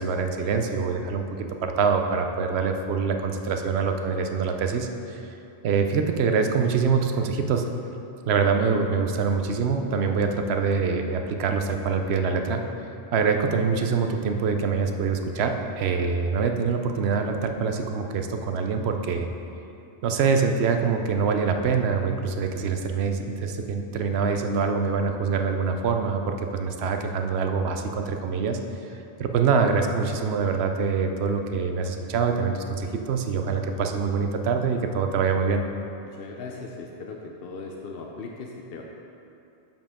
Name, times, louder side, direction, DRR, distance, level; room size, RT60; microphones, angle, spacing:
voice 1, 0.0-5.2 5.6-7.6 8.3-12.6 13.1-19.3 20.0-28.6 29.2-35.6, right 5 dB, 85° right, 5 dB, 0.9 m, -25 dB
voice 2, 36.2-38.8, left 4 dB, 70° left, 0 dB, 0.8 m, -38 dB
7.4 x 7.3 x 3.6 m, 2.7 s
omnidirectional pair, 1.0 m